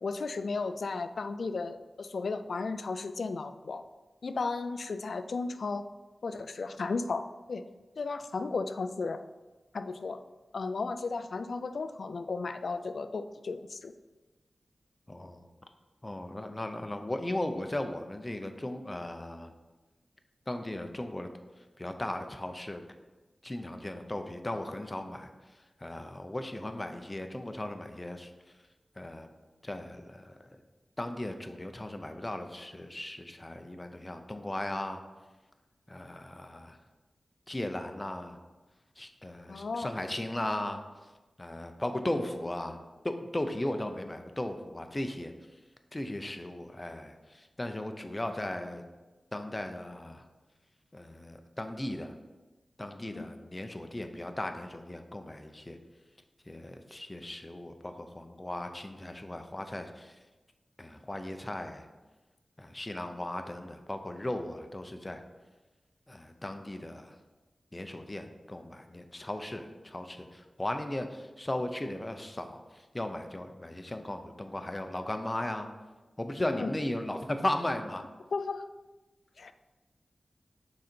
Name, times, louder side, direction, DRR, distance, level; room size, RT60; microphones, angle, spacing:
voice 1, 0.0-3.8 4.2-5.8 6.2-7.6 8.0-9.2 9.7-10.2 10.5-13.9 16.4-16.5 39.5-39.9 53.1-53.3 76.5-76.7 78.3-78.7 79.4-79.5, left 4 dB, 75° left, 10 dB, 0.3 m, -34 dB
voice 2, 15.1-15.5 16.0-19.5 20.5-21.3 21.8-22.8 23.4-25.3 25.8-28.3 29.0-29.3 29.6-30.5 31.0-35.0 35.9-36.8 37.5-38.4 39.0-40.8 41.4-42.8 43.0-45.3 45.9-48.8 49.3-50.3 50.9-52.1 52.8-55.8 56.5-60.2 60.8-61.9 62.6-65.2 66.1-67.2 67.7-75.7 76.2-78.0, left 1 dB, 20° left, 6 dB, 0.6 m, -37 dB
6.3 x 4.0 x 4.4 m, 1.2 s
wide cardioid pair, 90°, 0 cm